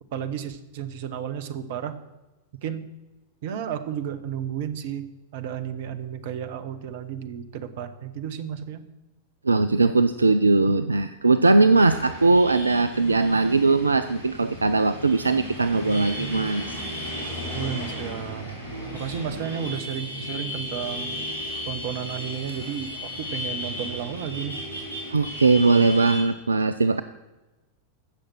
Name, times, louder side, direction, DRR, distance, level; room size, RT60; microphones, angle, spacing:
voice 1, 0.1-1.9 2.6-2.8 3.4-8.8 17.5-18.5 18.9-21.2 21.6-24.6, right 9 dB, 50° right, 11 dB, 1.0 m, -32 dB
voice 2, 9.4-16.8 21.5-21.6 25.1-27.0, right 3 dB, 80° right, 12 dB, 0.4 m, -20 dB
sound 1, 11.7-26.2, left 1 dB, 70° left, 3.8 m, -35 dB
16.0 x 6.6 x 6.1 m, 1.1 s
figure-of-eight pair, 90°, 0 cm